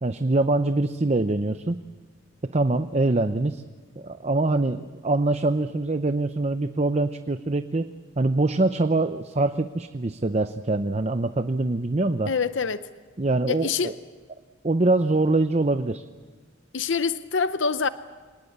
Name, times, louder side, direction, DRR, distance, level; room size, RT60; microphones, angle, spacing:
voice 1, 0.0-1.8 2.4-3.6 4.0-7.9 8.2-12.3 13.2-13.9 14.6-16.0, right 2 dB, 35° right, 0.6 m, -24 dB
voice 2, 12.3-12.8 13.5-13.9 16.7-17.9, left 5 dB, 65° left, 0.7 m, -25 dB
26.0 x 19.0 x 8.6 m
head